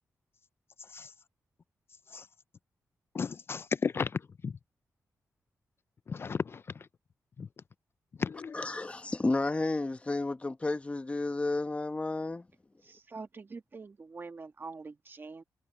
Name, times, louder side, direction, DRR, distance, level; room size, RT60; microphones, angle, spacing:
voice 1, 3.1-4.5 6.1-6.6 7.4-7.5 8.2-8.6, left 5 dB, 40° left, 0.4 m, -34 dB
voice 2, 8.5-12.5, left 2 dB, 20° left, 1.0 m, -31 dB
voice 3, 12.8-15.4, right 4 dB, 35° right, 1.3 m, -45 dB
wide cardioid pair, 120°, 6 cm